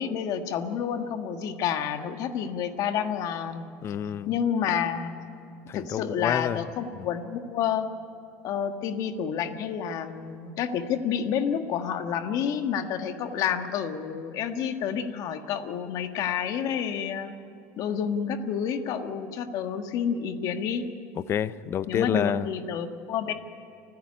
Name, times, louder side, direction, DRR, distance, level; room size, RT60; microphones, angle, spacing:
voice 1, 0.0-3.7 4.3-5.1 5.7-7.9 8.4-17.3 17.8-20.8 21.9-23.3, left 8 dB, 50° left, 7 dB, 1.6 m, -29 dB
voice 2, 3.8-4.3 5.7-6.6 7.0-7.1 21.2-22.5, left 9 dB, 35° left, 16 dB, 0.6 m, -28 dB
29.5 x 10.5 x 9.7 m, 2.6 s
supercardioid pair, 130°, 8 cm